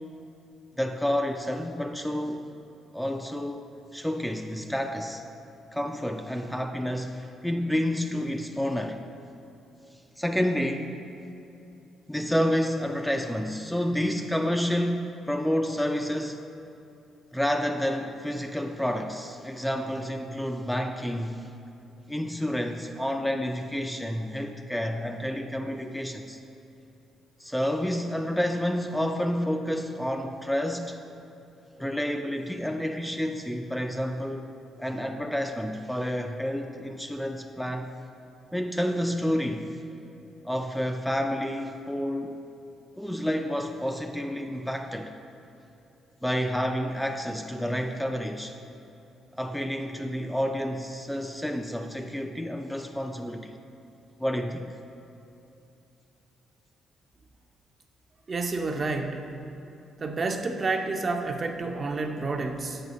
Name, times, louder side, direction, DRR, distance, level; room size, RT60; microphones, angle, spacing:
voice 1, 0.8-2.5 2.9-3.6 3.9-5.2 5.7-9.0 10.2-11.0 12.1-16.5 17.3-21.5 22.1-26.4 27.4-31.0 31.8-34.5 34.8-37.9 38.5-39.7 40.4-42.4 43.0-45.1 46.2-48.6 49.3-53.5 54.2-54.7, equal, 5° left, 4 dB, 0.3 m, -29 dB
voice 2, 58.3-59.2 60.0-62.8, right 3 dB, 40° right, 4 dB, 0.6 m, -29 dB
7.7 x 4.7 x 4.1 m, 2.8 s
cardioid pair, 90°, 0 cm